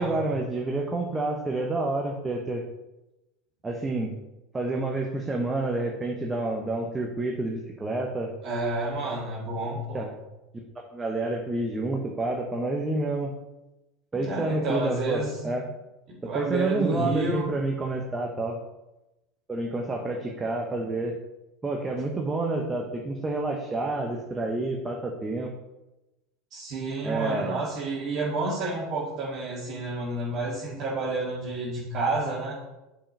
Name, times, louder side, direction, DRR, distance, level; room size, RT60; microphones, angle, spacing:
voice 1, 0.0-2.6 3.6-4.1 4.5-8.3 9.9-10.1 10.9-13.3 14.1-15.6 16.2-18.6 19.5-21.1 21.6-25.5 27.0-27.6, right 2 dB, 20° right, 1 dB, 1.1 m, -29 dB
voice 2, 8.4-10.0 14.1-15.5 16.1-17.5 26.5-32.6, right 2 dB, 45° right, -7 dB, 2.1 m, -30 dB
7.2 x 5.0 x 5.4 m, 0.97 s
hypercardioid pair, 85°, 0 cm